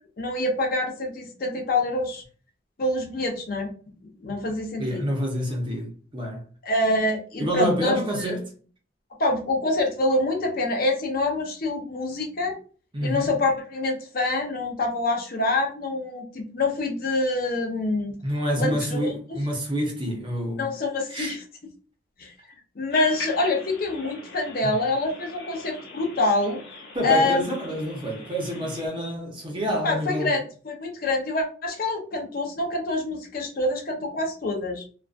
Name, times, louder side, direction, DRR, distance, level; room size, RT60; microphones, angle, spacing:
voice 1, 0.2-2.2 2.8-3.7 4.2-5.0 6.6-8.3 9.2-12.6 13.0-18.1 18.6-19.1 20.6-21.4 22.2-22.3 22.8-26.6 27.0-27.5 29.8-34.8, left 2 dB, 50° left, 0.5 m, -26 dB
voice 2, 4.8-6.4 7.4-8.5 12.9-13.3 18.2-20.7 21.1-21.3 24.6-24.7 26.9-30.4, equal, 25° right, 0.6 m, -28 dB
sound 1, 22.9-28.9, left 4 dB, 75° left, 0.8 m, -40 dB
2.4 x 2.2 x 2.4 m
head